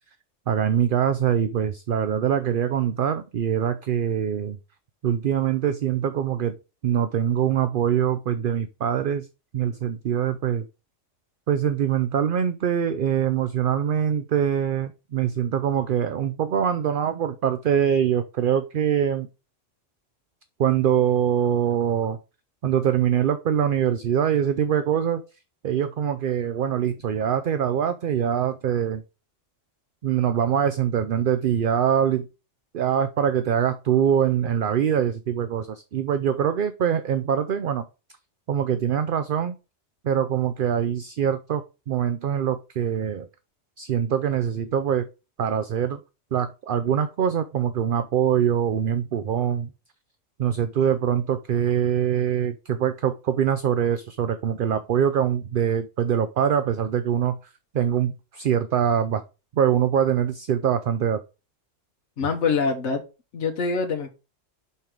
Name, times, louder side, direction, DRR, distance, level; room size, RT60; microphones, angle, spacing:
voice 1, 0.5-4.6 5.0-6.5 6.8-9.3 9.5-10.6 11.5-19.3 20.6-22.2 22.6-25.2 25.6-29.0 30.0-32.3 32.7-37.8 38.5-39.5 40.0-43.3 43.8-45.1 45.4-46.0 46.3-49.7 50.4-57.4 57.7-59.2 59.6-61.2, right 9 dB, 55° right, 10 dB, 0.6 m, -23 dB
voice 2, 62.2-63.0 63.3-64.2, left 4 dB, 65° left, 3 dB, 1.3 m, -25 dB
5.7 x 4.6 x 5.0 m, 0.29 s
omnidirectional pair, 1.3 m